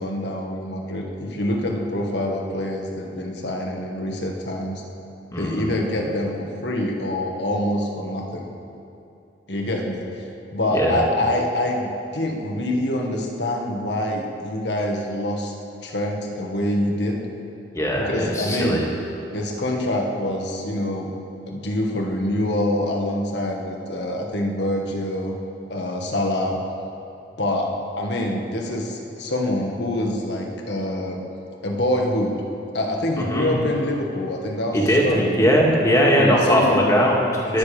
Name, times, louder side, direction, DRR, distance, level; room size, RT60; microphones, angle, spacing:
voice 1, 0.0-4.8 5.4-8.5 9.5-15.5 15.8-17.2 18.0-18.8 19.3-21.2 21.5-25.3 25.7-26.6 27.4-31.2 31.6-32.4 32.7-35.6 36.2-36.9 37.4-37.6, left 1 dB, 75° left, 1 dB, 1.8 m, -25 dB
voice 2, 5.3-5.7 10.7-11.0 17.7-18.8 33.2-33.6 34.7-37.6, equal, 20° left, -2 dB, 2.1 m, -20 dB
21.5 x 8.3 x 5.1 m, 2.7 s
head